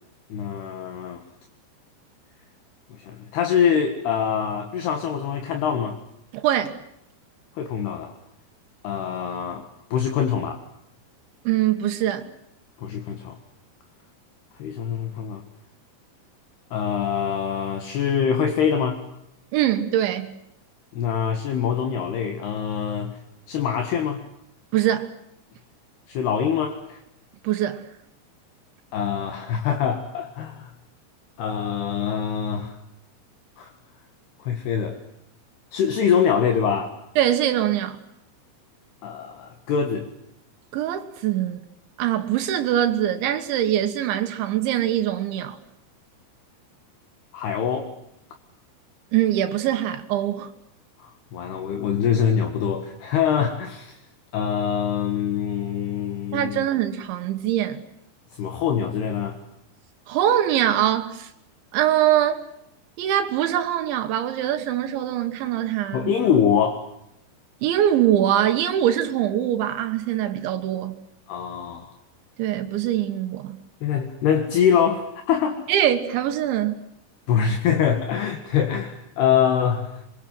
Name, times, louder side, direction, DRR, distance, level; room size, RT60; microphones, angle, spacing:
voice 1, 0.3-1.2 2.9-6.0 7.6-8.2 8.8-10.6 12.8-13.4 14.6-15.4 16.7-19.0 20.9-23.2 23.5-24.2 26.1-27.0 28.9-30.7 31.4-32.8 33.6-33.7 34.4-35.0 35.7-37.0 39.0-40.1 47.3-47.9 51.0-54.0 54.3-56.7 58.4-59.4 65.9-66.9 71.3-71.9 73.8-75.6 77.3-80.0, left 8 dB, 65° left, 3.6 m, -24 dB
voice 2, 6.3-6.8 11.5-12.3 19.5-20.3 24.7-25.1 27.4-27.9 37.2-38.0 40.7-41.6 42.0-45.6 49.1-50.5 56.3-57.8 60.1-61.3 61.7-62.5 63.0-66.1 67.6-71.0 72.4-73.6 75.7-76.8, right 11 dB, 85° right, 3.7 m, -23 dB
27.5 x 24.5 x 7.8 m
omnidirectional pair, 5.2 m